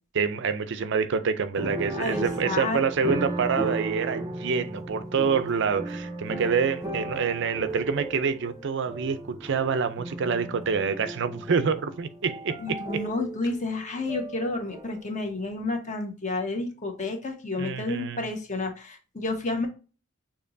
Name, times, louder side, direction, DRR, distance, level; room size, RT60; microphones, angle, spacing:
voice 1, 0.1-13.0 17.6-18.2, right 5 dB, 55° right, 0.5 m, -27 dB
sound 1, 1.5-15.2 15.5-15.6, right 2 dB, 15° right, 0.6 m, -36 dB
voice 2, 1.9-3.3 12.6-19.7, left 2 dB, 35° left, 1.2 m, -31 dB
6.5 x 3.0 x 2.6 m
head